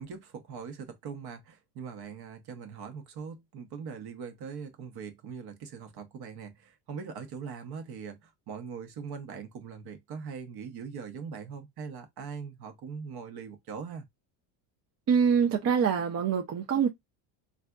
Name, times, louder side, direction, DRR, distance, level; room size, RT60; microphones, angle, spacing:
voice 1, 0.0-14.0, right 6 dB, 55° right, 0.9 m, -41 dB
voice 2, 15.1-16.9, right 7 dB, 35° right, 0.5 m, -25 dB
3.3 x 2.5 x 2.3 m
cardioid pair, 110°, 47 cm